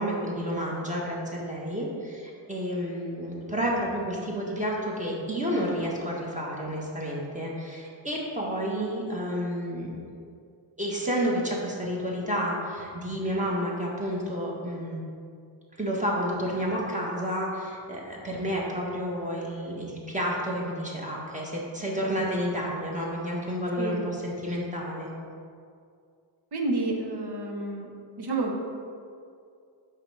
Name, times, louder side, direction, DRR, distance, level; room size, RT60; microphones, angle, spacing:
voice 1, 0.0-9.9 10.8-15.0 15.8-25.1, equal, 15° right, -4 dB, 1.3 m, -30 dB
voice 2, 23.7-24.1 26.5-27.9 28.2-28.6, right 2 dB, 55° right, 2 dB, 1.1 m, -29 dB
5.6 x 4.5 x 5.4 m, 2.3 s
wide cardioid pair, 95°, 47 cm